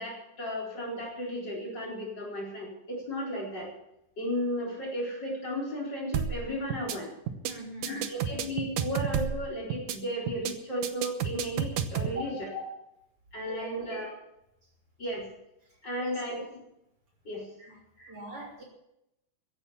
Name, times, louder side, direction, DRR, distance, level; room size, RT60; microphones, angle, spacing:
voice 1, 0.0-3.7 4.2-7.1 7.8-12.7 13.3-14.1 15.0-15.3 15.8-16.6 17.2-17.5 18.0-18.1, equal, 35° left, -1 dB, 4.8 m, -34 dB
sound 1, 6.1-6.4 6.7-7.0 7.3-7.5 7.8-9.4 9.7-10.0 10.3-10.5 10.8-12.1, right 8 dB, 80° right, 2.5 m, -30 dB
voice 2, 7.4-8.0 13.4-13.7 16.0-16.1 17.6-17.7 18.1-18.6, right 2 dB, 45° right, -2 dB, 4.1 m, -42 dB
15.5 x 10.5 x 7.2 m, 0.83 s
omnidirectional pair, 3.6 m